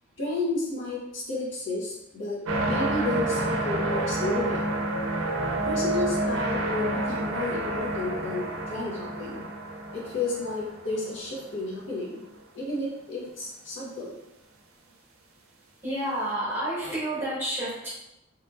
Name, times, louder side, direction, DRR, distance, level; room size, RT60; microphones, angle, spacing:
voice 1, 0.2-4.6 5.6-9.4 9.9-12.2 12.5-14.1, left 2 dB, 60° left, -5 dB, 0.7 m, -32 dB
sound 1, 2.5-11.6 12.2-12.3, right 2 dB, 80° right, 0.4 m, -29 dB
voice 2, 15.8-17.9, right 1 dB, 10° right, -9 dB, 1.1 m, -30 dB
2.8 x 2.6 x 2.4 m, 0.86 s
head